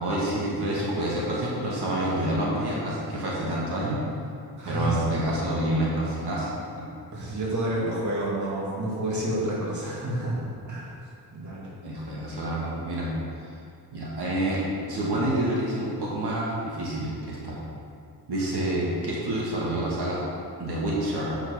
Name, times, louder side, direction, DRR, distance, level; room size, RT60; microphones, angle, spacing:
voice 1, 0.0-4.0 4.7-6.5 11.8-13.1 13.9-14.6 14.9-17.6 18.3-20.2 20.6-21.4, right 1 dB, 70° right, -6 dB, 2.1 m, -28 dB
voice 2, 4.6-5.1 7.1-10.9 11.3-11.7, right 1 dB, 45° right, -5 dB, 2.2 m, -29 dB
7.8 x 6.2 x 5.7 m, 2.4 s
cardioid pair, 95°, 41 cm